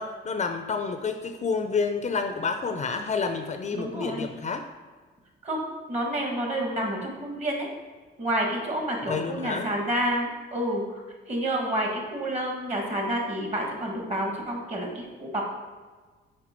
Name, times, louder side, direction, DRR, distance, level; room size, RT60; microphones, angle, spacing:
voice 1, 0.0-4.6 9.1-9.7, left 5 dB, 35° left, 7 dB, 0.5 m, -29 dB
voice 2, 3.8-4.2 5.4-5.6 5.9-7.7 8.2-11.0 11.3-15.4, right 1 dB, 35° right, 1 dB, 1.7 m, -29 dB
6.0 x 4.4 x 4.4 m, 1.4 s
cardioid pair, 90°, 20 cm